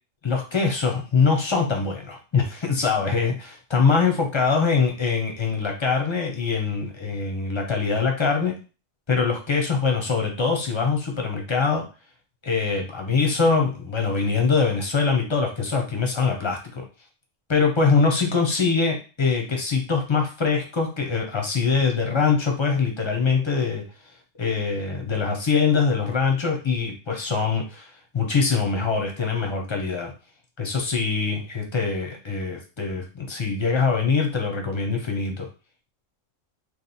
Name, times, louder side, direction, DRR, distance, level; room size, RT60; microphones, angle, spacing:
voice 1, 0.2-8.5 9.1-11.8 12.4-16.8 17.5-23.8 24.4-30.1 30.6-35.5, left 5 dB, 25° left, 1 dB, 0.6 m, -23 dB
3.3 x 2.5 x 4.1 m, 0.34 s
omnidirectional pair, 1.5 m